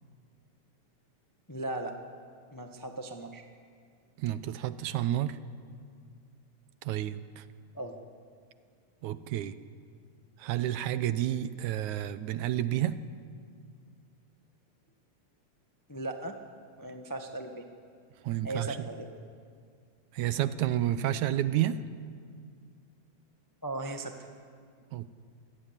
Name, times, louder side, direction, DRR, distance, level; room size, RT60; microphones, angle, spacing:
voice 1, 1.5-1.9 2.5-3.4 7.7-8.0 15.9-16.3 16.8-17.6 18.4-19.1 23.6-24.3, right 2 dB, 25° left, 4 dB, 0.4 m, -37 dB
voice 2, 4.2-5.4 6.8-7.4 9.0-9.6 10.4-13.0 18.2-18.9 20.1-21.8 24.9-25.1, right 12 dB, 75° right, 13 dB, 2.1 m, -30 dB
27.5 x 18.0 x 9.8 m, 2.2 s
omnidirectional pair, 3.7 m